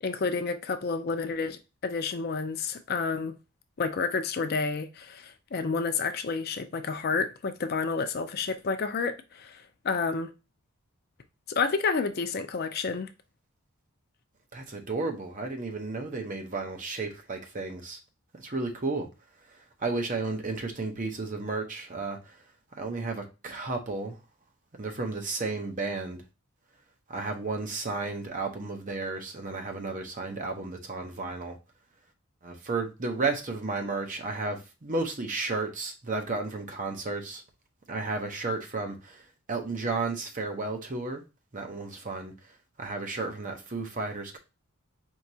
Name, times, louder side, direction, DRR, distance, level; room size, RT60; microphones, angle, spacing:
voice 1, 0.0-3.3 3.8-10.3 11.5-13.1, left 4 dB, 45° left, 0.4 m, -30 dB
voice 2, 14.5-18.0 18.4-19.1 19.5-22.4 22.8-24.2 24.8-26.2 27.1-31.6 32.4-37.4 37.9-41.2 41.5-44.4, right 3 dB, 35° right, 0.7 m, -33 dB
4.6 x 2.8 x 2.7 m
head